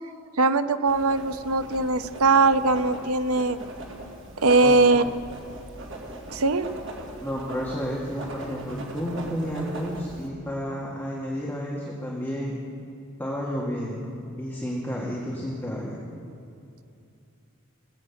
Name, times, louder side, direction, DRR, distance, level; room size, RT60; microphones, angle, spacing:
voice 1, 0.4-3.6 4.4-5.0 6.3-6.7, right 3 dB, 90° right, 11 dB, 0.7 m, -21 dB
Writing, 0.9-10.3, right 1 dB, 60° right, 2.4 m, -40 dB
voice 2, 7.2-12.6 13.2-16.0, equal, 10° left, -5 dB, 1.9 m, -31 dB
20.0 x 8.7 x 7.2 m, 2.6 s
head